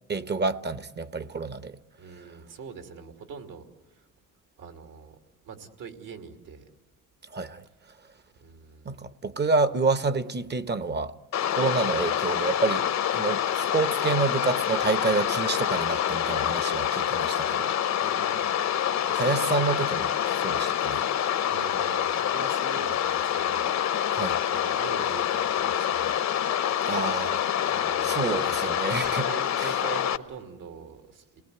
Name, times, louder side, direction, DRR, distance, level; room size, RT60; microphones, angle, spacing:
voice 1, 0.1-1.8 7.3-7.6 8.8-11.1 11.6-12.9 13.1-17.7 19.2-20.1 20.4-21.0 24.1-24.4 26.9-27.4 28.0-29.3, right 4 dB, 30° right, 0.9 m, -28 dB
voice 2, 2.0-4.1 4.6-5.2 5.4-6.7 8.4-9.0 18.0-18.5 19.1-19.7 21.4-24.2 24.5-26.2 27.7-28.6 29.2-31.4, right 6 dB, 75° right, 2.8 m, -43 dB
sound 1, 11.3-30.2, left 10 dB, 55° left, 0.9 m, -26 dB
29.0 x 19.0 x 8.3 m
cardioid pair, 85°, 32 cm